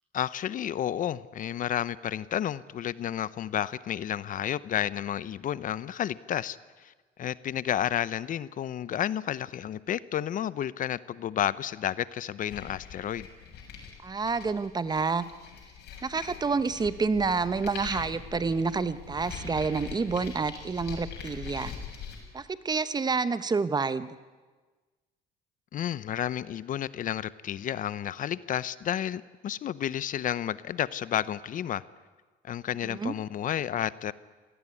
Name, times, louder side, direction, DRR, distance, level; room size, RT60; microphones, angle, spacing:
voice 1, 0.1-6.9 7.2-13.3 25.7-31.8 32.4-34.1, left 10 dB, 50° left, 18 dB, 0.8 m, -31 dB
sound 1, 12.5-22.2, left 7 dB, 75° left, 7.2 m, -42 dB
voice 2, 14.0-15.3 16.0-21.7 22.3-24.1 33.0-33.1, right 4 dB, 25° right, 14 dB, 1.0 m, -28 dB
26.0 x 18.5 x 9.9 m, 1.3 s
cardioid pair, 110°, 17 cm